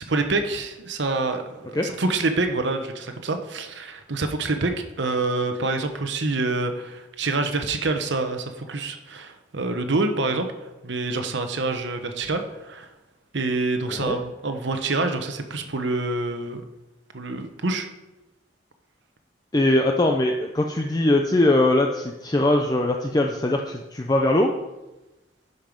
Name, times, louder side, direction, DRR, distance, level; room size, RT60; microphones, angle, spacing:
voice 1, 0.0-10.5 10.8-12.9 13.3-16.6 17.1-17.9, right 3 dB, 65° right, 7 dB, 0.9 m, -26 dB
voice 2, 19.5-24.5, left 1 dB, 20° left, 2 dB, 0.5 m, -21 dB
11.0 x 5.4 x 5.2 m, 1.1 s
head